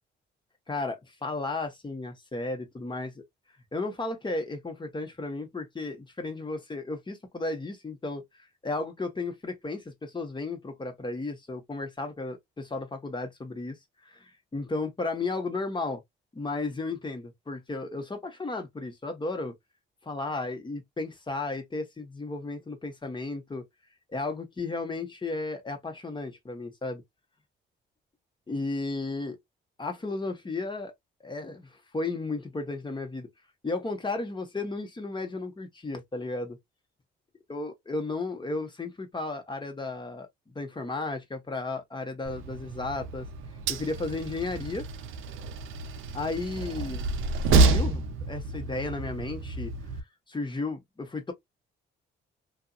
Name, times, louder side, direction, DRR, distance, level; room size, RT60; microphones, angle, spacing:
voice 1, 0.7-3.2 3.7-8.2 8.6-13.8 14.0-16.0 16.3-19.5 20.0-23.6 24.1-27.0 28.5-29.4 29.8-30.9 31.2-33.3 33.6-36.6 37.5-40.3 40.5-43.3 43.7-44.9 46.1-47.2 47.4-49.7 50.3-51.3, left 3 dB, 25° left, 1.1 m, -34 dB
Train, 42.3-50.0, right 3 dB, 85° right, 0.6 m, -28 dB
2.7 x 2.6 x 2.3 m
cardioid pair, 90°, 20 cm